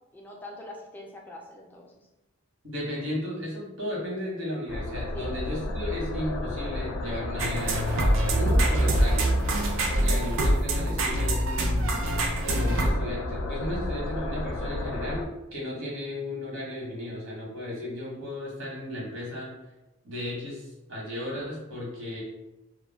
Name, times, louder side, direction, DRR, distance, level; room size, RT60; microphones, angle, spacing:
voice 1, 0.1-2.1 5.1-5.5, left 1 dB, 10° left, -2 dB, 0.3 m, -44 dB
voice 2, 2.6-9.3 9.9-12.0 12.4-19.5 20.0-22.2, left 1 dB, 80° right, -4 dB, 1.1 m, -35 dB
sound 1, 4.7-15.2, left 1 dB, 80° left, 0.4 m, -33 dB
sound 2, 7.4-12.9, right 1 dB, 65° right, 0.4 m, -25 dB
2.2 x 2.1 x 3.3 m, 1.0 s
head